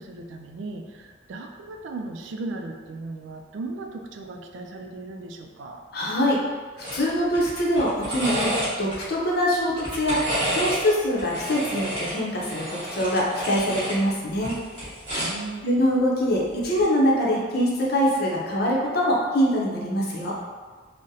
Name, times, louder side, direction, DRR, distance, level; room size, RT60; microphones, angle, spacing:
voice 1, 0.0-5.8 15.2-15.6, right 2 dB, 80° right, 4 dB, 0.3 m, -36 dB
voice 2, 5.9-6.4 6.9-8.5 8.8-10.2 10.5-14.6 15.6-20.3, equal, 50° left, -4 dB, 0.6 m, -23 dB
sound 1, 6.8-7.0 7.3-9.0 9.7-10.8 11.2-14.0 14.3-15.4 16.6-16.8, equal, 25° right, 1.3 m, -30 dB
3.8 x 2.1 x 2.7 m, 1.5 s
head